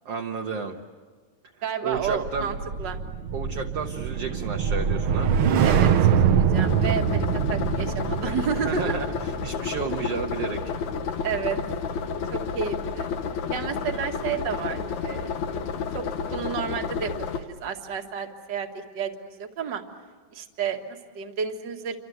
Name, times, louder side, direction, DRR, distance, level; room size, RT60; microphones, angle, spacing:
voice 1, 0.1-0.8 1.8-2.5 3.3-5.3 8.6-10.6, right 5 dB, 60° right, 2 dB, 1.8 m, -32 dB
voice 2, 1.6-3.0 5.6-8.9 11.2-11.6 12.3-13.1 13.5-15.4 15.9-16.0 16.3-19.8 20.3-22.0, right 7 dB, 40° right, 4 dB, 1.9 m, -31 dB
sound 1, 1.9-12.3 12.7-13.0, right 7 dB, 80° right, 1.2 m, -25 dB
sound 2, 6.5-17.4, left 5 dB, 65° left, 2.3 m, -31 dB
29.0 x 25.5 x 8.1 m, 1.5 s
omnidirectional pair, 4.0 m